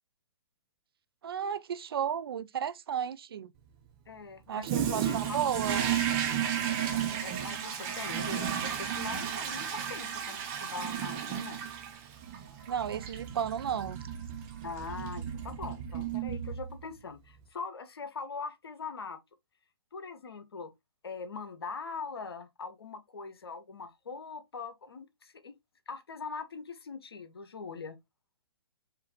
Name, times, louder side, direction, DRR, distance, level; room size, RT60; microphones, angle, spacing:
voice 1, 1.2-3.5 4.5-5.8 12.7-14.0, right 8 dB, 65° right, 0.4 m, -33 dB
voice 2, 4.1-5.7 7.2-11.6 14.6-19.2 19.9-20.7 21.0-25.6 25.9-28.0, left 4 dB, 75° left, 1.0 m, -42 dB
Toilet flush, 4.6-17.0, right 9 dB, 35° right, 1.0 m, -33 dB
4.9 x 2.7 x 3.1 m
figure-of-eight pair, 120°, 13 cm